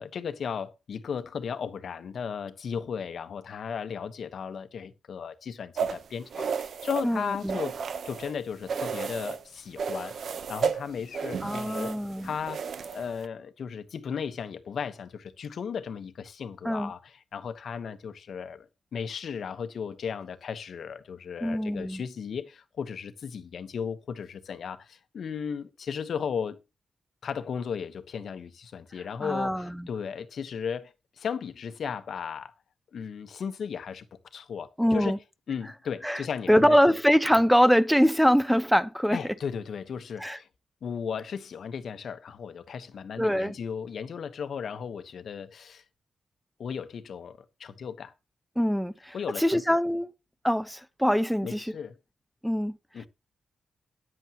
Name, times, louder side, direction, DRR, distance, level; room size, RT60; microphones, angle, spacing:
voice 1, 0.0-7.7 8.0-11.9 12.2-12.7 12.9-26.6 27.2-32.5 32.9-34.0 34.3-35.2 35.5-36.8 39.1-40.5 40.8-45.8 46.6-48.1 49.1-49.6 51.4-52.0 52.9-53.1, left 7 dB, 65° left, 1.2 m, -35 dB
sound 1, 5.8-8.3 8.7-9.4 9.8-13.2, right 6 dB, 65° right, 0.9 m, -33 dB
voice 2, 7.0-7.6 11.4-12.3 16.6-16.9 21.4-22.0 29.2-29.9 34.8-35.2 36.0-36.2 36.5-39.2 40.2-40.4 43.2-43.5 48.6-50.1 50.4-51.7 52.4-52.8, equal, ahead, 0.5 m, -23 dB
14.0 x 10.0 x 3.0 m
cardioid pair, 110°, 0 cm